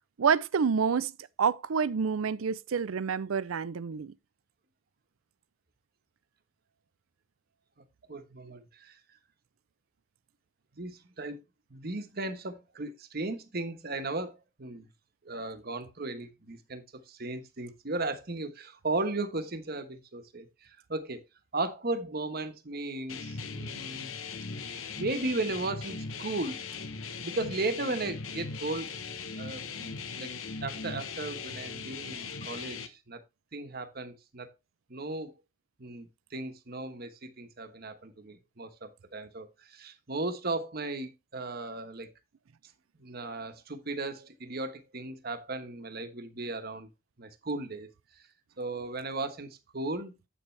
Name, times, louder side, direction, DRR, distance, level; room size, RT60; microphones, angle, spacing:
voice 1, 0.2-1.1 1.4-4.1, right 6 dB, 90° right, 0.5 m, -28 dB
voice 2, 8.1-9.0 10.7-11.4 11.7-14.9 15.2-21.2 21.5-24.1 24.7-26.6 27.1-29.0 29.4-30.3 30.6-33.2 33.5-34.5 34.9-35.3 35.8-42.1 42.9-46.9 47.2-48.2 48.6-50.2, right 2 dB, 50° right, 1.2 m, -36 dB
sound 1, 23.1-32.9, left 5 dB, 85° left, 1.1 m, -39 dB
8.4 x 7.1 x 3.3 m
head